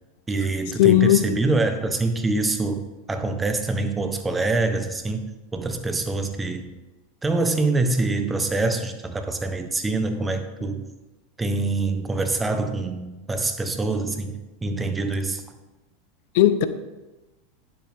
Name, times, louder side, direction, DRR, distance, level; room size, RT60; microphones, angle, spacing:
voice 1, 0.3-2.8 3.1-5.2 5.5-6.8 7.2-10.9 11.4-15.4, right 3 dB, 15° right, 7 dB, 1.1 m, -25 dB
voice 2, 0.8-1.2 16.3-16.7, left 13 dB, 65° left, 12 dB, 0.7 m, -16 dB
9.9 x 7.7 x 3.6 m, 1.1 s
hypercardioid pair, 105°, 0 cm